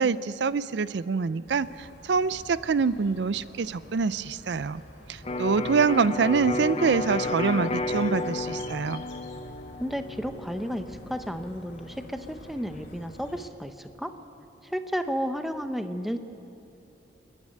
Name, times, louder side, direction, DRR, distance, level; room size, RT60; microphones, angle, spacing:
voice 1, 0.0-4.8 5.1-9.0, right 5 dB, 65° right, 16 dB, 0.4 m, -25 dB
sound 1, 1.3-7.0, equal, 40° right, 4.7 m, -52 dB
sound 2, 1.5-13.5, left 1 dB, 75° left, 2.5 m, -49 dB
Electric guitar, 5.2-13.0, left 2 dB, 35° left, 0.7 m, -33 dB
voice 2, 9.8-14.2 14.6-16.2, equal, ahead, 8 dB, 0.7 m, -32 dB
28.0 x 10.5 x 9.3 m, 2.8 s
head